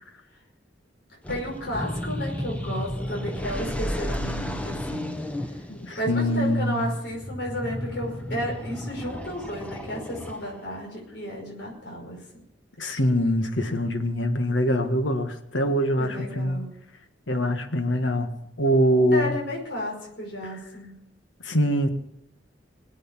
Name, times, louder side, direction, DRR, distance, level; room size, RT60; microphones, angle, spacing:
sound 1, 1.2-10.8, left 1 dB, 10° left, 0.9 m, -33 dB
voice 1, 1.3-5.2 5.5-5.6 6.0-12.2 16.0-16.7 19.1-21.0, equal, 60° left, -2 dB, 5.4 m, -33 dB
voice 2, 5.7-6.9 12.8-16.6 17.3-18.3 18.6-19.4 21.4-21.9, equal, 85° left, 7 dB, 1.7 m, -24 dB
21.5 x 8.4 x 7.4 m, 0.80 s
head